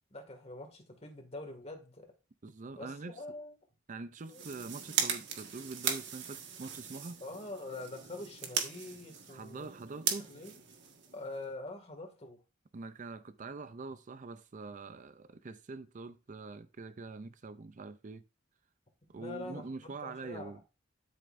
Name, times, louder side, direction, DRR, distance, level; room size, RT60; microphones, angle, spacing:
voice 1, 0.1-2.1 2.8-3.5 4.3-4.4 7.2-9.7 10.2-10.5 11.1-12.4 19.1-20.6, left 2 dB, 35° left, 2.1 m, -45 dB
voice 2, 2.4-3.2 3.9-7.2 9.3-10.3 12.7-18.2 19.1-20.6, right 3 dB, 40° right, 0.5 m, -44 dB
sound 1, 4.2-11.5, right 7 dB, 65° right, 1.6 m, -38 dB
12.0 x 6.8 x 2.6 m
head